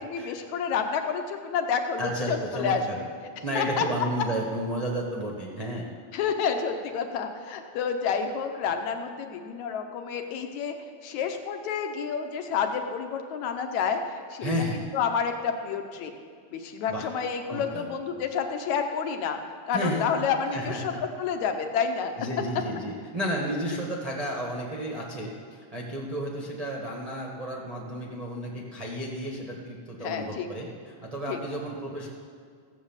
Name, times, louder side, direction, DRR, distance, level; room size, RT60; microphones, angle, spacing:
voice 1, 0.0-3.1 3.6-3.8 6.1-10.7 11.0-14.5 14.9-16.1 16.5-19.4 19.7-20.9 21.2-22.1 30.0-30.5 31.3-31.4, left 6 dB, 80° left, 5 dB, 2.2 m, -29 dB
voice 2, 2.0-3.0 3.4-5.9 14.4-14.8 16.9-17.1 17.5-17.8 19.7-20.1 20.5-21.0 22.2-32.1, right 1 dB, 50° right, -3 dB, 0.4 m, -32 dB
15.5 x 7.5 x 7.2 m, 2.1 s
omnidirectional pair, 3.3 m